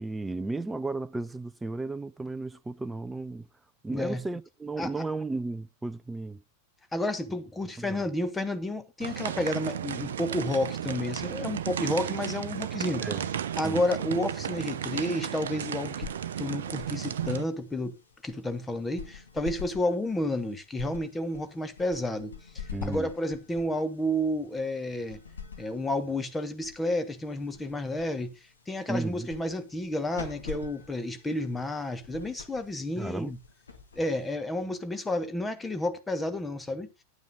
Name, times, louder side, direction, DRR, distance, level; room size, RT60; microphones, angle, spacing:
voice 1, 0.0-3.5 3.8-6.4 7.8-8.0 13.0-13.3 13.6-13.8 22.7-23.1 28.9-29.3 33.0-33.3, right 3 dB, 10° right, 0.4 m, -34 dB
voice 2, 3.9-4.2 4.8-4.9 6.9-13.1 13.6-16.1 16.4-17.9 18.2-25.2 25.6-28.4 28.7-33.4 33.9-36.9, left 1 dB, 10° left, 1.3 m, -31 dB
sound 1, 9.0-17.4, right 9 dB, 60° right, 0.6 m, -34 dB
sound 2, 15.7-34.6, left 7 dB, 70° left, 2.3 m, -46 dB
10.0 x 9.1 x 3.8 m
figure-of-eight pair, 90°, 0 cm